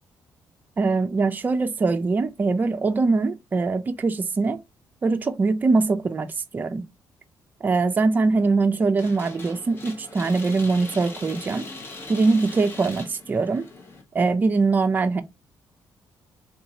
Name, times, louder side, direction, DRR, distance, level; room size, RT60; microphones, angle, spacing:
voice 1, 0.8-4.6 5.0-6.3 6.5-6.8 7.6-11.7 12.1-13.7 14.1-15.2, right 3 dB, 25° right, 0.4 m, -22 dB
sound 1, 9.0-14.0, left 3 dB, 30° left, 0.9 m, -40 dB
3.8 x 2.7 x 2.8 m
cardioid pair, 130°, 7 cm